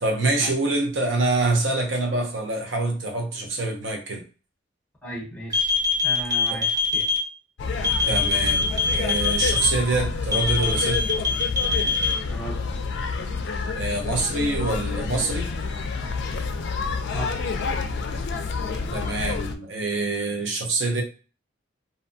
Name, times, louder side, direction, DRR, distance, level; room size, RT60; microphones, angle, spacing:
voice 1, 0.0-4.2 8.1-11.0 13.7-15.5 18.9-21.0, right 2 dB, 65° right, 2 dB, 0.6 m, -25 dB
voice 2, 5.0-5.7 6.0-7.1 12.3-12.7 17.1-17.4, right 1 dB, 10° left, -2 dB, 0.9 m, -35 dB
sound 1, 5.5-7.2 7.8-9.6 10.3-12.1, left 5 dB, 20° right, 0.4 m, -23 dB
sound 2, 7.6-19.6, left 4 dB, 60° left, 0.4 m, -28 dB
2.6 x 2.1 x 2.6 m, 0.35 s
head